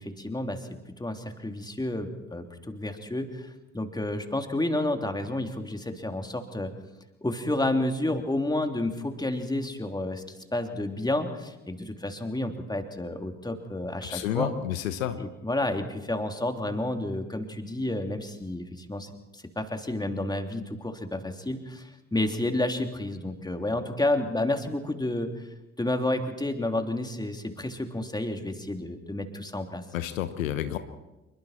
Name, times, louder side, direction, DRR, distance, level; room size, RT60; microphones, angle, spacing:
voice 1, 0.0-6.7 7.2-14.5 15.2-25.5 25.8-29.8, left 1 dB, 10° left, 5 dB, 3.1 m, -30 dB
voice 2, 14.1-15.2 29.9-30.8, left 11 dB, 75° left, 11 dB, 1.2 m, -30 dB
27.5 x 23.5 x 4.4 m, 0.99 s
figure-of-eight pair, 50°, 40 cm